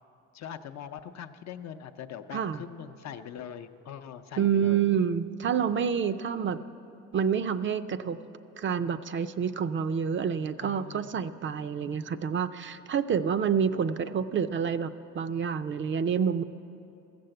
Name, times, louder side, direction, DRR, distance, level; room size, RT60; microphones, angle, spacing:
voice 1, 0.3-4.8 10.6-11.1 11.8-12.1, left 8 dB, 65° left, 8 dB, 0.6 m, -42 dB
voice 2, 4.4-6.6 7.1-8.2 8.6-16.4, right 7 dB, 40° right, 11 dB, 0.4 m, -28 dB
14.5 x 6.9 x 7.7 m, 2.8 s
cardioid pair, 90°, 30 cm